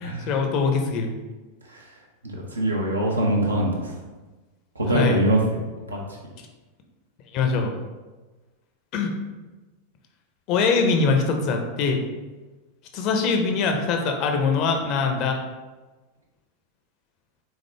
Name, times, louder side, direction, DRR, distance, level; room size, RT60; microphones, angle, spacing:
voice 1, 0.0-1.1 4.9-5.2 7.3-7.7 8.9-9.1 10.5-12.0 12.9-15.4, left 4 dB, 40° left, 3 dB, 0.6 m, -23 dB
voice 2, 2.5-3.9 4.7-5.6 5.9-6.0, right 1 dB, 80° right, -2 dB, 0.8 m, -23 dB
3.6 x 3.5 x 3.3 m, 1.2 s
figure-of-eight pair, 90°, 0 cm